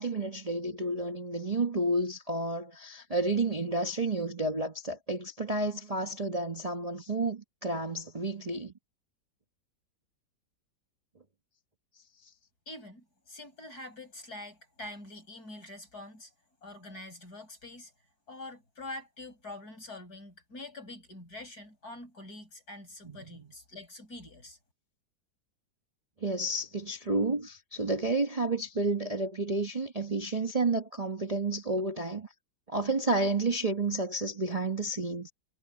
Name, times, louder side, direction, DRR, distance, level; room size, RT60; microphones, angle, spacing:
voice 1, 0.0-8.7 23.0-23.5 26.2-32.3 32.7-35.3, right 2 dB, 25° right, 1.1 m, -31 dB
voice 2, 12.7-16.3 16.6-17.9 18.3-24.6, left 2 dB, 60° left, 8.1 m, -45 dB
omnidirectional pair, 1.9 m